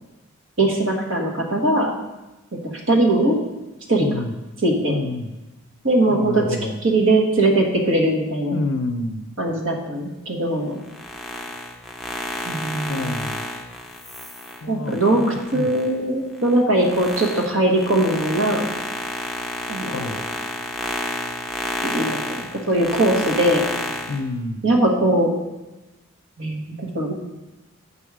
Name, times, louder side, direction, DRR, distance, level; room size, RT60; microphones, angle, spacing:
voice 1, 0.6-1.9 2.9-3.4 3.9-4.1 4.6-5.0 5.8-6.4 6.8-8.6 9.4-10.8 12.5-13.2 14.7-18.6 19.7-20.0 21.8-23.6 24.6-25.3 26.4-27.1, right 1 dB, 65° right, 1 dB, 1.4 m, -20 dB
voice 2, 4.0-4.3 4.9-5.3 6.1-6.8 8.5-9.2 12.9-13.4 14.6-15.7 19.9-20.2 24.1-24.6, left 2 dB, 65° left, 5 dB, 0.5 m, -28 dB
sound 1, 10.8-15.9 16.4-24.2, left 1 dB, ahead, 0.6 m, -30 dB
7.9 x 5.5 x 4.8 m, 1.1 s
head